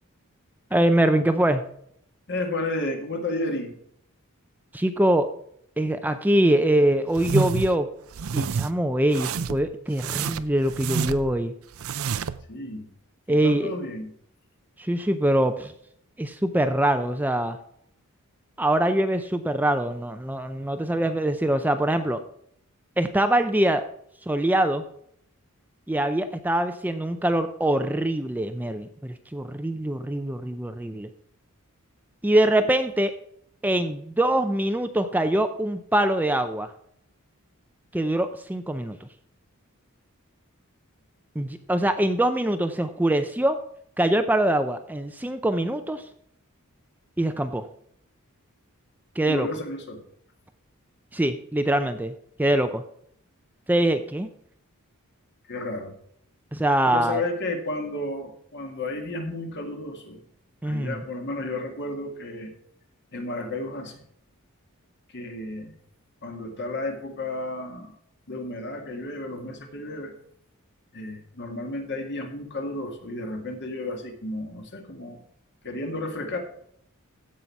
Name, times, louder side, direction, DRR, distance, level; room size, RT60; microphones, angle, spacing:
voice 1, 0.7-1.6 4.7-5.3 5.8-7.9 8.3-11.5 13.3-13.7 14.8-15.7 16.2-17.6 18.6-22.2 23.0-23.8 24.3-24.8 25.9-31.1 32.2-33.1 33.6-36.7 37.9-39.1 41.4-43.6 44.0-46.0 47.2-47.7 49.2-49.5 51.1-52.8 53.7-54.3 56.5-57.2 60.6-61.0, right 1 dB, 10° right, 8 dB, 0.5 m, -23 dB
voice 2, 2.3-3.7 12.5-12.9 13.3-14.1 49.3-50.0 55.5-55.9 56.9-60.2 60.6-62.5 63.1-64.0 65.1-65.7 66.2-68.0 68.3-70.1 70.9-75.2 75.6-76.4, left 2 dB, 55° left, 4 dB, 2.0 m, -32 dB
sound 1, 7.2-7.7 8.1-8.7 9.1-9.6 10.0-11.3 11.7-12.4, right 5 dB, 65° right, 0.5 m, -28 dB
15.0 x 5.6 x 4.6 m, 0.68 s
head